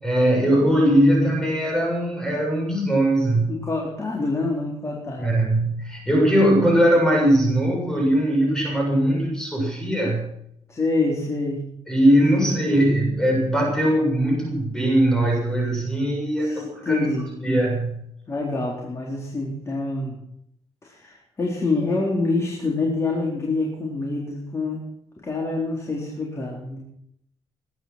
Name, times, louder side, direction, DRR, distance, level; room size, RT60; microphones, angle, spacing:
voice 1, 0.0-3.5 5.2-10.3 11.9-17.1 17.4-18.0, right 1 dB, 5° left, 0 dB, 7.2 m, -20 dB
voice 2, 3.5-5.3 10.7-11.6 12.3-12.5 16.4-17.3 18.3-20.1 20.8-24.8 25.2-26.8, left 3 dB, 30° left, -2 dB, 4.2 m, -26 dB
20.5 x 11.0 x 6.0 m, 0.72 s
cardioid pair, 130°, 10 cm